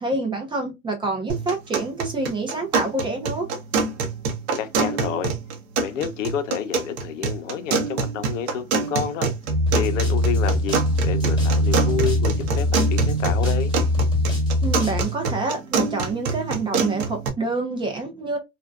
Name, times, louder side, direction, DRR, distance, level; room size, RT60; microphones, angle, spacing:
voice 1, 0.0-3.5 14.6-18.4, right 3 dB, 10° right, 0.5 m, -27 dB
sound 1, 1.3-17.3, right 4 dB, 55° right, 0.8 m, -27 dB
voice 2, 4.6-5.3 5.8-9.3 9.7-13.8, left 8 dB, 70° left, 0.7 m, -29 dB
sound 2, 9.5-15.0, left 1 dB, 85° right, 0.7 m, -22 dB
sound 3, 9.7-15.1, left 2 dB, 10° left, 1.4 m, -36 dB
2.6 x 2.2 x 2.2 m
hypercardioid pair, 125°, 39 cm